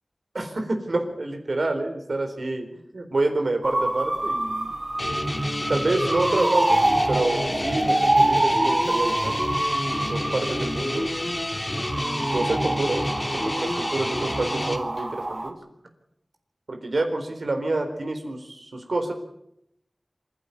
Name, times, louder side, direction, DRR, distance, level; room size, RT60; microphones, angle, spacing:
voice 1, 0.3-2.7 2.9-4.7 5.7-6.8 7.1-9.4 10.1-11.1 11.9-13.1 13.3-15.6 16.7-19.1, right 2 dB, 80° right, 5 dB, 4.1 m, -27 dB
sound 1, 3.6-15.5, right 1 dB, 50° right, 3.0 m, -26 dB
sound 2, 5.0-14.8, left 1 dB, 35° left, 3.2 m, -29 dB
26.5 x 11.5 x 9.8 m, 0.78 s
wide cardioid pair, 45°, 0 cm